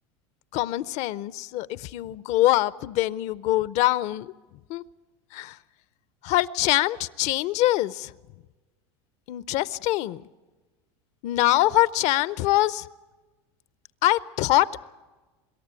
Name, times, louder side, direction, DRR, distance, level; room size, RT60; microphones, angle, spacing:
voice 1, 0.5-4.3 4.7-4.8 5.3-5.6 6.2-8.1 9.3-10.2 11.2-12.8 14.0-14.8, left 16 dB, 55° left, 0.6 m, -24 dB
25.0 x 13.0 x 8.8 m
supercardioid pair, 125°, 14 cm